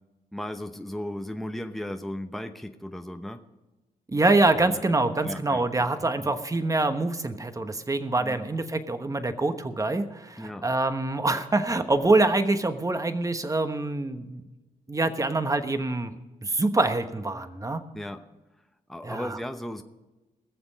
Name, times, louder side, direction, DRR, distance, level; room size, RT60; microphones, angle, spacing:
voice 1, 0.3-3.4 4.5-5.6 6.2-6.3 8.2-8.5 10.4-10.6 17.9-18.2 18.9-19.8, left 1 dB, ahead, 6 dB, 0.9 m, -36 dB
voice 2, 4.1-14.4 14.9-16.1 16.4-17.8 19.0-19.4, right 2 dB, 20° right, 9 dB, 1.2 m, -25 dB
20.0 x 7.0 x 5.2 m, 1.1 s
cardioid pair, 70°, 15 cm